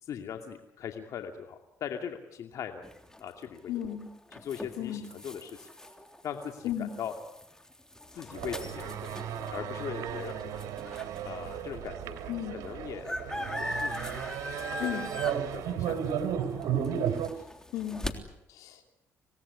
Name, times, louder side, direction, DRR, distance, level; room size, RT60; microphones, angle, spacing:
voice 1, 0.0-2.8 3.2-4.0 4.3-5.7 6.2-7.1 8.1-10.7 11.2-12.2 12.5-15.0 15.2-16.0, left 8 dB, 70° left, 5 dB, 2.6 m, -40 dB
sound 1, 2.8-11.3 11.9-12.0 12.1-18.1, left 1 dB, 10° left, 3.4 m, -41 dB
voice 2, 3.7-4.1 4.8-5.1 6.6-6.9 12.3-12.6 14.8-15.1 17.7-18.9, left 10 dB, 85° left, 6 dB, 3.3 m, -35 dB
sound 2, 8.3-17.3, right 9 dB, 80° right, 3.1 m, -34 dB
27.0 x 18.5 x 9.9 m, 0.84 s
cardioid pair, 75°, 6 cm